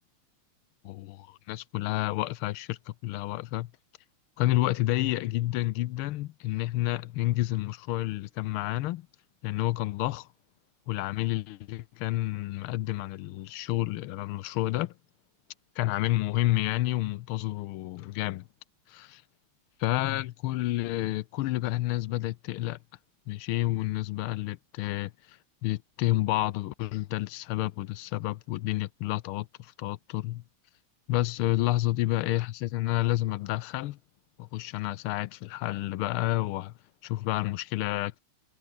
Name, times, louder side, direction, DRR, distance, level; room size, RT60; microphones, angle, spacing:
voice 1, 0.8-3.7 4.4-9.1 9.4-10.3 10.9-14.9 15.8-18.5 18.9-19.2 19.8-22.8 23.3-30.4 31.1-34.0 34.4-36.7 37.0-38.2, left 16 dB, 80° left, 1.5 m, -30 dB
omnidirectional pair, 2.4 m